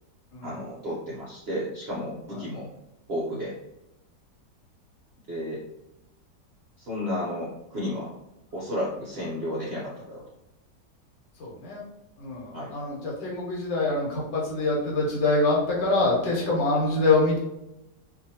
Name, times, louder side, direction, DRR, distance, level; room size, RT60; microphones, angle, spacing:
voice 1, 0.4-2.7 3.1-3.6 5.3-5.6 6.8-8.1 8.5-10.2 12.5-12.7, equal, 55° right, -7 dB, 0.7 m, -32 dB
voice 2, 11.4-11.8 12.2-17.4, left 2 dB, 90° left, -4 dB, 1.5 m, -25 dB
2.7 x 2.7 x 2.7 m, 0.88 s
omnidirectional pair, 1.9 m